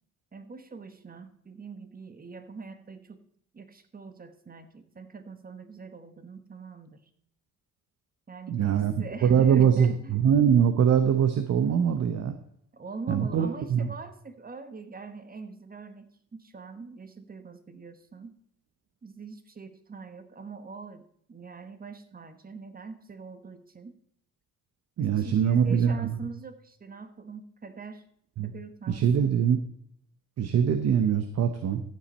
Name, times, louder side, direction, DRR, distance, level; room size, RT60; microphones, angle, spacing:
voice 1, 0.3-3.2 3.5-7.0 8.3-10.2 12.7-18.4 19.0-21.0 21.3-23.9 25.0-28.0 28.4-29.3, right 4 dB, 30° right, 10 dB, 1.3 m, -42 dB
voice 2, 8.5-12.4 13.1-13.9 25.0-26.1 28.4-28.5 28.9-29.6 30.4-31.8, right 8 dB, 60° right, 8 dB, 0.9 m, -23 dB
14.5 x 7.4 x 4.2 m, 0.66 s
cardioid pair, 90°, 30 cm